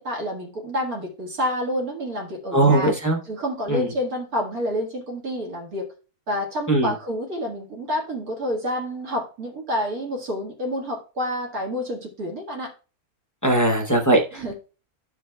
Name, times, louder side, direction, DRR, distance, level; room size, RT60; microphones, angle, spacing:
voice 1, 0.0-2.9 3.3-5.9 6.3-12.7 14.3-14.5, equal, 70° right, 0 dB, 2.1 m, -28 dB
voice 2, 2.5-3.2 3.7-3.8 6.7-6.9 13.4-14.5, right 2 dB, 20° left, 3 dB, 0.5 m, -20 dB
13.0 x 4.7 x 2.2 m, 0.36 s
omnidirectional pair, 1.6 m